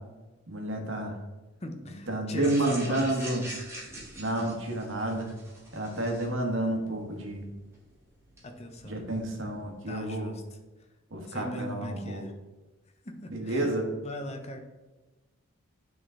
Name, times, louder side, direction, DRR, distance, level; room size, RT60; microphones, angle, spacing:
voice 1, 0.5-1.2 2.1-3.4 4.2-5.3 5.7-7.5 8.8-10.3 11.1-12.2 13.3-13.9, right 1 dB, 60° right, 2 dB, 1.3 m, -30 dB
voice 2, 1.6-3.3 4.1-4.2 8.4-9.0 9.9-10.4 11.3-12.3 13.0-13.8 14.0-14.6, equal, 30° left, 5 dB, 0.7 m, -39 dB
sound 1, 2.4-10.1, right 1 dB, 10° right, 1.6 m, -45 dB
9.2 x 3.8 x 3.7 m, 1.1 s
head